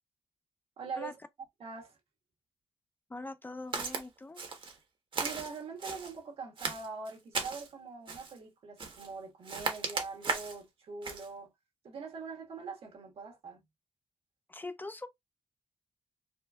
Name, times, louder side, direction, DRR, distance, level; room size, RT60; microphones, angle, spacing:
voice 1, 0.8-1.2 1.6-2.0 5.2-11.5 11.8-13.6, right 4 dB, 70° right, 1.5 m, -43 dB
voice 2, 3.1-4.4 14.5-15.1, left 2 dB, 20° left, 0.4 m, -42 dB
Walk footsteps, 3.7-4.0 4.4-4.8 5.1-6.1 6.6-7.7 8.1-8.4 8.8-9.1 9.5-10.6 11.0-11.3, right 4 dB, 55° right, 1.1 m, -36 dB
4.2 x 2.4 x 2.3 m
cardioid pair, 80°, 10 cm